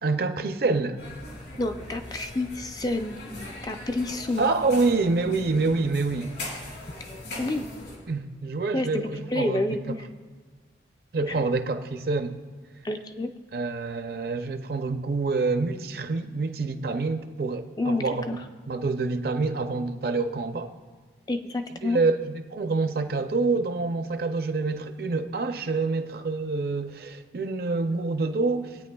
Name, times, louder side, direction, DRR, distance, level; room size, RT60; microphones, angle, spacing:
voice 1, 0.0-1.0 4.4-6.3 8.1-10.0 11.1-12.4 13.5-18.4 18.7-20.7 21.8-28.8, right 3 dB, 55° right, 0.5 m, -27 dB
sound 1, 1.0-8.0, left 1 dB, 70° left, 2.7 m, -40 dB
voice 2, 1.6-3.2 3.6-4.5 7.4-7.7 8.7-10.1 11.3-11.4 12.8-13.3 17.8-18.4 21.3-22.0, left 2 dB, 20° left, 0.4 m, -29 dB
19.5 x 8.9 x 2.3 m
head